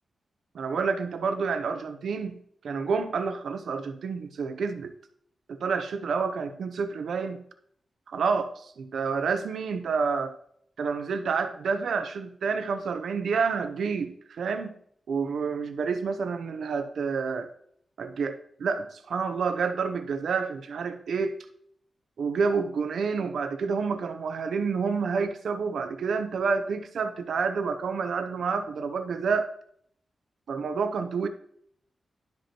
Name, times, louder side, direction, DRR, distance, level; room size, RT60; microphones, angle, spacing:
voice 1, 0.5-2.4 2.6-4.9 5.5-7.4 8.1-10.4 10.8-14.8 15.1-17.5 18.0-21.4 22.2-29.5 30.5-31.3, right 5 dB, 85° right, 8 dB, 0.7 m, -29 dB
11.5 x 5.2 x 3.0 m, 0.66 s
wide cardioid pair, 175°, 0 cm